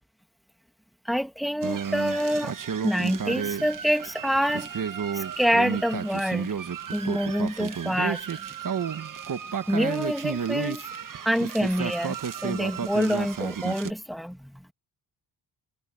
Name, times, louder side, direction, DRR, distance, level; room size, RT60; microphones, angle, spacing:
voice 1, 1.1-2.5 2.8-4.7 5.1-6.5 6.9-8.5 9.7-10.8 11.2-12.2 12.4-14.6, equal, ahead, 2.4 m, -26 dB
sound 1, 1.6-13.9, right 7 dB, 45° right, 1.6 m, -32 dB
cardioid pair, 80°, 44 cm